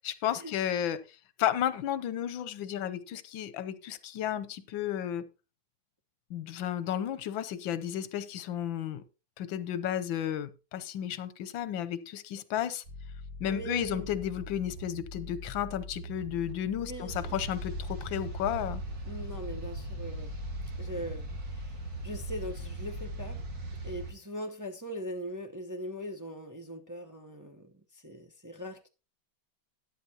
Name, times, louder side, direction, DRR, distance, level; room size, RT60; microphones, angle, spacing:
voice 1, 0.2-1.0 1.4-5.3 6.3-9.0 9.4-12.8 13.4-18.8, left 10 dB, 85° left, 1.5 m, -33 dB
sound 1, 12.8-23.9, left 1 dB, 70° right, 7.4 m, -44 dB
voice 2, 13.4-14.1 16.8-17.4 19.0-20.3 20.8-23.4 23.8-28.9, equal, 20° right, 0.5 m, -41 dB
sound 2, 17.1-24.1, right 1 dB, 50° right, 2.3 m, -39 dB
13.0 x 10.0 x 2.8 m
omnidirectional pair, 2.1 m